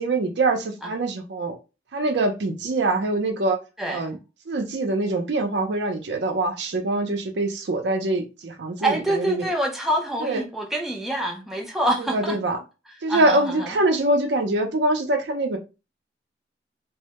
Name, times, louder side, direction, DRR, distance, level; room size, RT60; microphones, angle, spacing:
voice 1, 0.0-1.6 1.9-3.6 3.9-4.2 4.5-9.5 10.2-10.4 12.1-12.6 13.0-15.6, right 2 dB, 75° right, 0.5 m, -24 dB
voice 2, 3.8-4.1 8.8-12.4 12.9-13.8, right 1 dB, ahead, 0.3 m, -26 dB
2.1 x 2.0 x 2.8 m
head